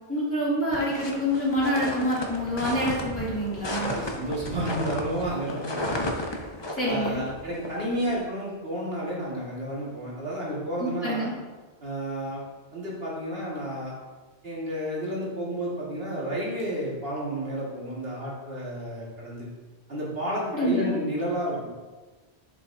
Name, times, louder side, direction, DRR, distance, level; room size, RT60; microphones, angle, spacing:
voice 1, 0.1-3.9 6.7-7.2 10.8-11.3 20.5-21.0, equal, 10° left, -9 dB, 2.5 m, -27 dB
sound 1, 0.7-8.2, left 1 dB, 30° left, 0.8 m, -33 dB
voice 2, 3.7-6.1 6.8-11.3 11.8-12.4 12.7-13.9 14.4-19.5 19.9-21.7, right 1 dB, 65° right, -6 dB, 2.0 m, -31 dB
10.5 x 5.5 x 2.7 m, 1.3 s
omnidirectional pair, 1.1 m